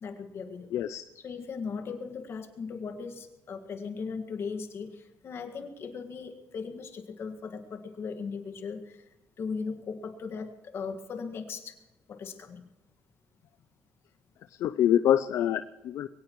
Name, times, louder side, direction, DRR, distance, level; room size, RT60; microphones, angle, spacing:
voice 1, 0.0-0.8 1.2-9.0 9.4-11.8 12.1-12.6, left 5 dB, 50° left, 6 dB, 1.9 m, -38 dB
voice 2, 0.7-1.0 14.5-16.1, left 10 dB, 70° left, 11 dB, 0.5 m, -26 dB
22.5 x 17.5 x 3.2 m, 1.1 s
cardioid pair, 105°, 5 cm